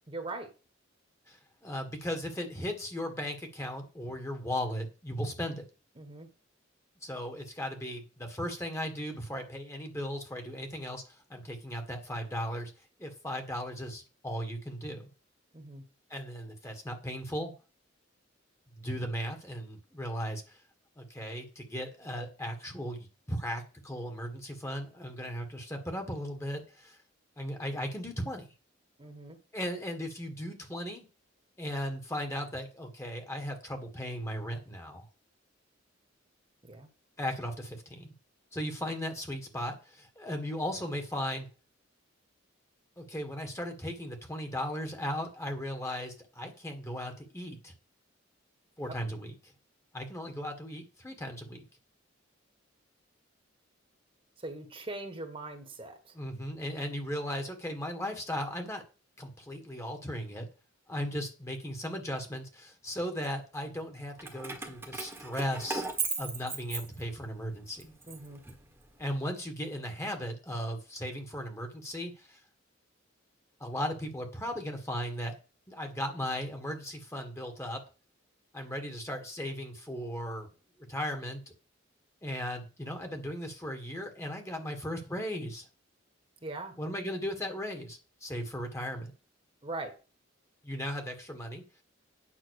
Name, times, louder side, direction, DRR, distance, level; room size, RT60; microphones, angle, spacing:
voice 1, 0.1-0.5 6.0-6.3 15.5-15.8 29.0-29.4 36.7-36.9 48.8-49.0 54.4-56.1 68.0-68.4 86.4-86.7 89.6-89.9, right 2 dB, 25° right, 6 dB, 1.5 m, -41 dB
voice 2, 1.3-5.7 7.0-12.7 13.0-15.0 16.1-17.5 18.8-20.6 21.0-27.0 27.4-28.5 29.5-31.0 31.6-35.0 37.2-38.1 38.5-41.5 43.0-47.7 48.8-49.5 49.9-51.6 56.1-58.8 59.2-60.5 60.9-65.9 66.2-67.9 69.0-72.4 73.6-75.3 75.7-77.8 78.5-80.5 80.8-81.4 82.2-85.7 86.8-89.1 90.6-91.8, equal, 15° left, 4 dB, 1.7 m, -37 dB
Keys jangling, 64.2-67.4 67.8-69.1, right 4 dB, 10° right, 1.5 m, -37 dB
9.2 x 5.8 x 6.5 m, 0.33 s
head